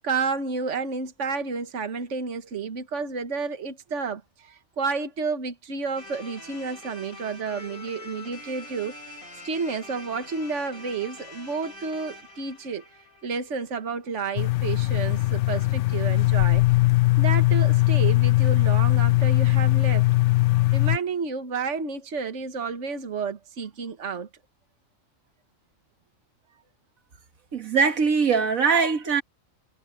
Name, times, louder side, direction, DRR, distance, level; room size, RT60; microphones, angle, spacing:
voice 1, 0.0-9.0 9.4-12.9 13.2-16.6 17.2-20.1 20.7-24.3, right 5 dB, 60° right, 1.8 m, -31 dB
sound 1, 5.9-14.1, left 2 dB, 85° left, 7.7 m, -44 dB
sound 2, 14.4-21.0, left 19 dB, 70° left, 0.8 m, -20 dB
voice 2, 27.5-29.2, right 5 dB, 85° right, 2.0 m, -21 dB
omnidirectional pair, 1.4 m